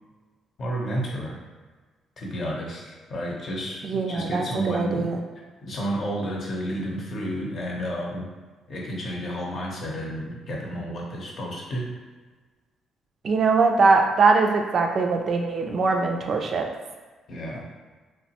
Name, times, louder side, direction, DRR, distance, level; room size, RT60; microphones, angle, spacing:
voice 1, 0.6-1.4 2.2-5.1 5.6-8.3 8.7-11.9 17.3-17.7, equal, 55° left, -2 dB, 0.7 m, -31 dB
voice 2, 3.8-5.2 13.2-16.7, right 4 dB, 55° right, 3 dB, 0.3 m, -22 dB
3.0 x 2.0 x 2.8 m, 1.3 s
cardioid pair, 90°, 0 cm